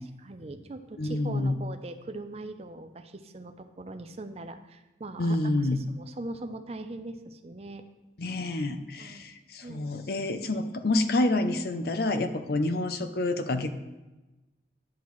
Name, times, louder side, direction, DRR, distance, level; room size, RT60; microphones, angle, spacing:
voice 1, 0.2-7.8 9.0-9.2 9.6-10.3, right 2 dB, 35° right, 8 dB, 0.5 m, -41 dB
voice 2, 1.0-1.6 5.2-5.8 8.2-13.7, left 2 dB, 55° left, 9 dB, 0.5 m, -28 dB
10.5 x 7.1 x 3.1 m, 1.1 s
head